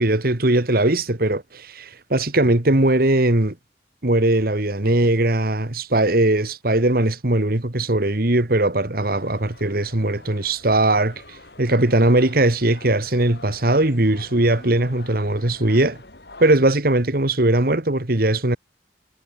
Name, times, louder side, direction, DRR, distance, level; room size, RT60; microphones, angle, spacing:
voice 1, 0.0-3.5 4.0-11.2 11.6-16.0 16.4-18.6, right 1 dB, 55° right, 1.9 m, -19 dB
sound 1, 9.0-16.5, left 2 dB, 65° left, 6.7 m, -45 dB
head